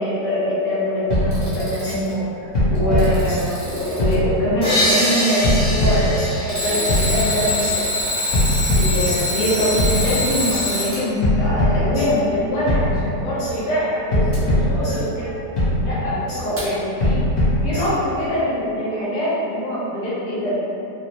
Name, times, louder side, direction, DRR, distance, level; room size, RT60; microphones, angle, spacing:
voice 1, 0.0-2.3 2.7-8.0 8.7-15.4 15.8-17.2 17.6-20.6, equal, 80° left, -8 dB, 1.5 m, -23 dB
sound 1, 1.1-2.0 2.5-3.7 4.0-4.9 5.4-6.5 6.9-7.7 8.3-9.5 9.8-10.6 11.2-12.4 12.7-13.5 14.1-15.3 15.6-16.4 17.0-18.2, left 1 dB, 50° left, 1.2 m, -21 dB
Alarm, 1.1-2.1 2.7-4.1 6.5-11.0 14.3-14.4 16.6-16.7, left 1 dB, 20° right, 0.3 m, -25 dB
sound 2, 4.6-8.2, equal, 30° left, 1.2 m, -24 dB
4.1 x 2.1 x 2.8 m, 2.7 s
omnidirectional pair, 1.9 m